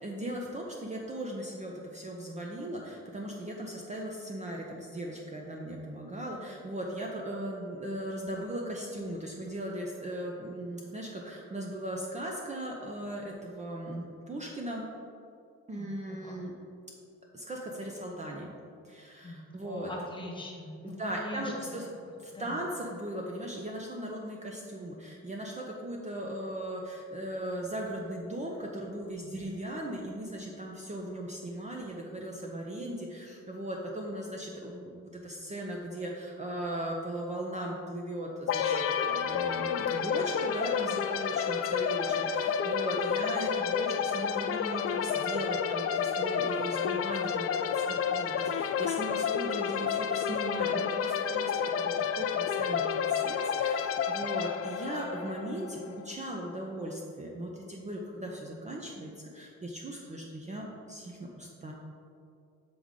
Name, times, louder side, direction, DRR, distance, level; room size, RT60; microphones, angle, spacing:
voice 1, 0.0-14.8 15.7-16.5 17.3-18.5 18.8-19.9 20.8-21.9 22.2-38.7 39.0-51.5 51.8-61.7, right 1 dB, 25° right, -1 dB, 0.6 m, -38 dB
voice 2, 19.2-21.6 22.3-22.6, left 2 dB, 15° left, -1 dB, 1.2 m, -42 dB
sound 1, 38.5-56.1, left 7 dB, 50° left, 0.4 m, -30 dB
7.8 x 3.6 x 3.7 m, 2.5 s
cardioid pair, 90°, 30 cm